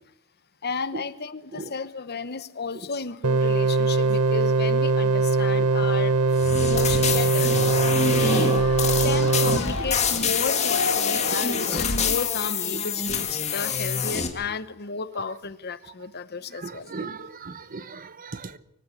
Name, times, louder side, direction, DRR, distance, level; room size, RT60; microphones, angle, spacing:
voice 1, 0.6-7.6 8.1-8.6 8.8-17.1, left 4 dB, 50° left, 1.0 m, -33 dB
sound 1, 3.2-9.6, right 3 dB, 85° right, 0.8 m, -21 dB
sound 2, 6.4-14.3, left 6 dB, 30° left, 2.1 m, -26 dB
sound 3, 7.4-13.2 13.6-13.7, left 4 dB, 85° left, 4.0 m, -33 dB
voice 2, 11.2-11.7 16.6-18.6, right 3 dB, 40° right, 0.9 m, -37 dB
24.5 x 14.5 x 8.3 m
head